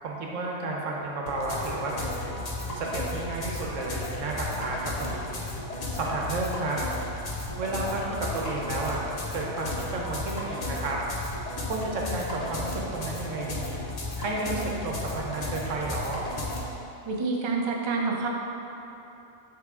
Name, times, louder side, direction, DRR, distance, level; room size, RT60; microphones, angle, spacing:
voice 1, 0.0-2.3 2.7-5.4 5.9-6.8 7.6-9.0 9.3-11.0 11.6-13.8 14.2-16.2, right 2 dB, 80° right, -2 dB, 1.2 m, -32 dB
sound 1, 1.3-16.6, left 2 dB, 40° left, 0.7 m, -34 dB
voice 2, 17.1-18.3, right 4 dB, 45° right, 0 dB, 0.3 m, -27 dB
8.2 x 3.5 x 3.6 m, 3.0 s
omnidirectional pair, 1.3 m